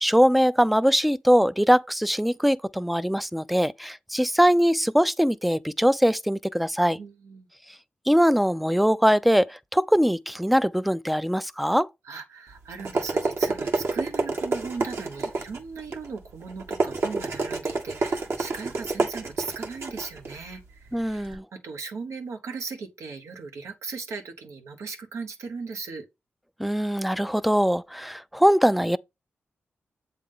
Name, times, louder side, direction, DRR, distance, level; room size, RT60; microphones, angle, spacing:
voice 1, 0.0-7.0 8.1-11.9 20.9-21.4 26.6-29.0, equal, ahead, 0.4 m, -22 dB
voice 2, 7.0-7.5 12.0-26.1, right 4 dB, 80° right, 1.0 m, -38 dB
sound 1, 12.5-21.3, right 3 dB, 65° right, 1.4 m, -29 dB
7.6 x 3.5 x 3.7 m
cardioid pair, 50°, 5 cm